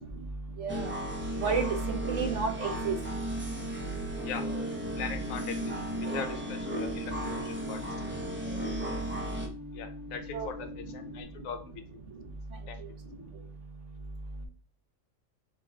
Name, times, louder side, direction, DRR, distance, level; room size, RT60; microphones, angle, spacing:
voice 1, 0.6-0.9 1.4-3.0 10.3-10.5, right 4 dB, 65° right, 3 dB, 1.2 m, -31 dB
sound 1, 0.7-9.5, right 1 dB, 15° right, 0.5 m, -35 dB
sound 2, 4.2-11.2, left 3 dB, 80° right, 2.3 m, -44 dB
voice 2, 5.0-5.7 6.0-7.8 9.7-11.8 12.7-12.8, left 6 dB, 75° left, 8 dB, 1.0 m, -40 dB
4.7 x 2.3 x 3.6 m, 0.42 s
omnidirectional pair, 1.4 m